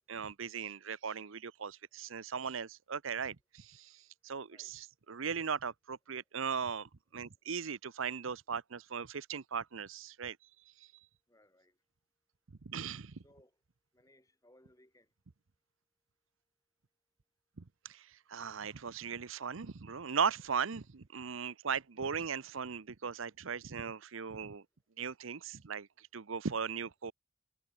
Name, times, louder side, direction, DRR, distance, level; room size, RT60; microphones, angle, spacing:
voice 1, 0.0-10.4 10.8-10.9 12.6-13.2 17.6-24.6 25.0-27.1, right 6 dB, 70° right, 0.7 m, -38 dB
voice 2, 11.3-11.7 13.2-13.5 13.9-15.1, left 1 dB, 15° left, 7.3 m, -65 dB
head